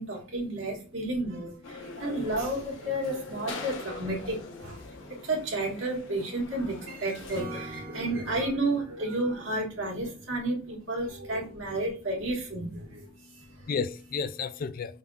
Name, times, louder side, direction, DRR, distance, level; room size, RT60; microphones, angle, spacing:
voice 1, 0.0-13.1 13.6-13.7, right 2 dB, 80° right, 1.7 m, -32 dB
sound 1, 1.6-7.4, left 3 dB, 80° left, 1.1 m, -43 dB
voice 2, 4.8-5.2 13.2-15.0, left 5 dB, 45° left, 0.3 m, -34 dB
Acoustic guitar / Strum, 7.3-10.7, right 1 dB, 25° right, 2.4 m, -45 dB
5.4 x 3.8 x 2.4 m
head